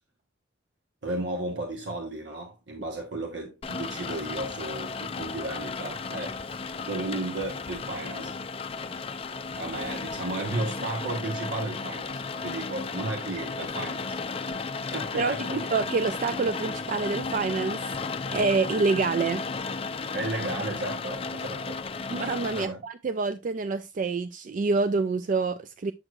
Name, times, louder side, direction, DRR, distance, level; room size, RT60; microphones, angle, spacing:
voice 1, 1.0-6.4 6.9-8.3 9.5-14.2 14.9-15.6 20.1-21.8 22.5-22.8, right 2 dB, 75° right, 1.0 m, -34 dB
Rain, 3.6-22.6, left 4 dB, 30° left, 0.4 m, -34 dB
voice 2, 15.1-17.8 18.3-19.4 22.1-25.9, right 4 dB, 45° right, 0.3 m, -27 dB
7.7 x 6.2 x 2.4 m
head